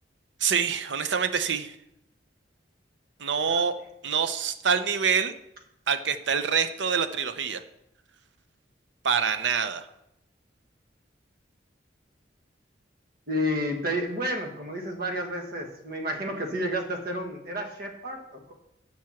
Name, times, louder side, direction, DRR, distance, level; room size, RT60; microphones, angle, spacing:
voice 1, 0.4-1.7 3.2-3.7 4.0-5.3 5.9-7.6 9.0-9.9, right 6 dB, 75° right, 11 dB, 0.7 m, -26 dB
voice 2, 13.3-18.5, equal, 55° right, 3 dB, 1.6 m, -31 dB
7.6 x 6.1 x 7.1 m, 0.83 s
head